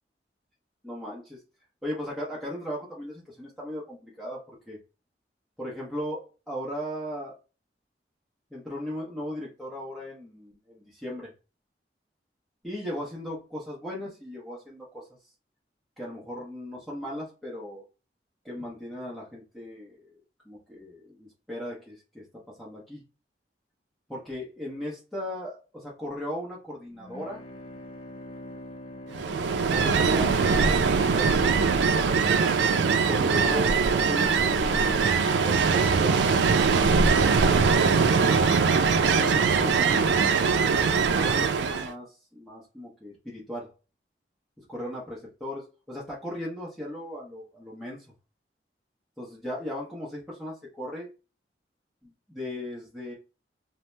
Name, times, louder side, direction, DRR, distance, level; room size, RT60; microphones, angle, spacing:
voice 1, 0.8-1.4 1.8-4.8 5.6-7.3 8.5-11.3 12.6-15.1 16.0-17.8 18.4-20.1 20.4-23.0 24.1-27.4 29.7-31.7 33.1-35.1 35.4-36.9 39.0-43.7 44.7-48.1 49.2-51.1 52.0-53.1, left 1 dB, ahead, -6 dB, 0.7 m, -37 dB
sound 1, 26.9-31.0, left 1 dB, 30° left, 0.4 m, -44 dB
Ocean, 29.1-41.9, right 5 dB, 85° right, 0.3 m, -22 dB
2.7 x 2.1 x 3.2 m, 0.32 s
head